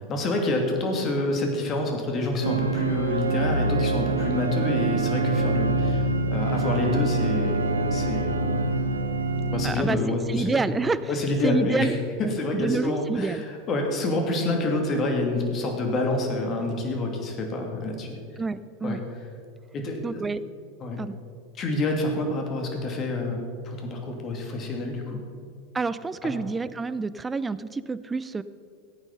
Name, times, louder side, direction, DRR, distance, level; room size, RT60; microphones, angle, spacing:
voice 1, 0.1-7.7 7.9-8.3 9.5-10.7 11.1-11.9 12.2-18.2 18.8-19.0 19.7-20.2 20.8-21.0 21.6-23.4 23.6-25.2, left 2 dB, 35° left, 2 dB, 2.6 m, -27 dB
sound 1, 2.4-9.7, right 2 dB, 90° right, 0.9 m, -25 dB
voice 2, 9.6-10.0 10.3-11.0 11.4-11.9 12.5-13.4 18.4-19.0 20.0-20.4 21.0-21.2 25.7-28.4, right 4 dB, 15° right, 15 dB, 0.5 m, -28 dB
14.5 x 8.9 x 5.5 m, 2.3 s
figure-of-eight pair, 90°, 0 cm